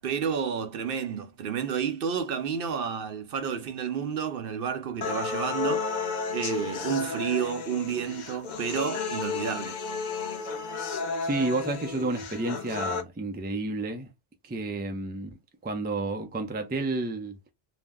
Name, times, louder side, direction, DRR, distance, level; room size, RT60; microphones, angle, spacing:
voice 1, 0.0-9.8, right 7 dB, 65° right, 0.8 m, -31 dB
sound 1, 5.0-13.0, left 5 dB, 55° left, 0.6 m, -32 dB
voice 2, 11.2-14.1 14.4-15.3 15.6-17.4, right 2 dB, 15° right, 0.3 m, -30 dB
2.6 x 2.0 x 3.4 m
omnidirectional pair, 1.0 m